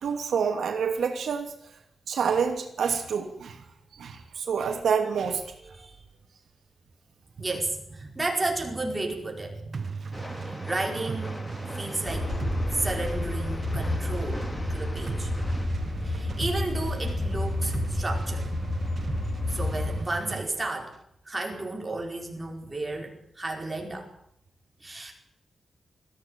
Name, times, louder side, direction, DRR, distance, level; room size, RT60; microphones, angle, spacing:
voice 1, 0.0-1.5 2.1-3.6 4.0-5.4, right 6 dB, 80° right, 5 dB, 2.8 m, -27 dB
voice 2, 7.3-9.8 10.2-11.4 11.7-12.3 12.7-15.3 16.0-18.5 19.5-20.9 21.2-24.1 24.8-25.1, right 2 dB, 15° right, 0 dB, 5.2 m, -33 dB
sound 1, 9.7-20.5, right 5 dB, 40° right, 0.9 m, -36 dB
Train, 10.1-15.7, left 1 dB, 15° left, 2.4 m, -42 dB
sound 2, 12.0-20.0, left 2 dB, 55° left, 5.5 m, -30 dB
20.5 x 15.5 x 9.1 m, 0.72 s
wide cardioid pair, 170°, 0 cm